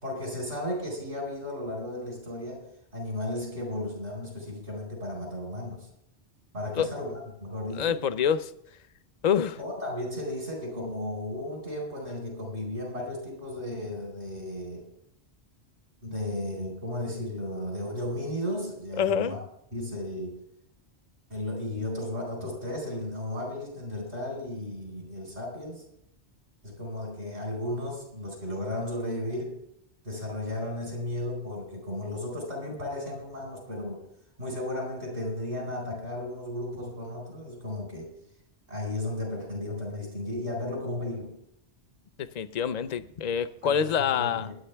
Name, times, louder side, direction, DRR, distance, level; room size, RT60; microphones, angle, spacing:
voice 1, 0.0-2.7 2.9-5.9 6.5-8.0 9.6-14.9 16.0-19.4 19.7-20.4 21.3-25.8 26.6-29.6 30.0-34.0 34.4-38.1 38.7-41.3 43.6-44.6, left 1 dB, 70° right, 0 dB, 4.7 m, -34 dB
voice 2, 7.8-8.5 9.2-9.6 19.0-19.4 42.2-44.5, left 8 dB, 45° left, 13 dB, 0.6 m, -26 dB
22.5 x 9.2 x 3.4 m, 0.75 s
omnidirectional pair, 1.2 m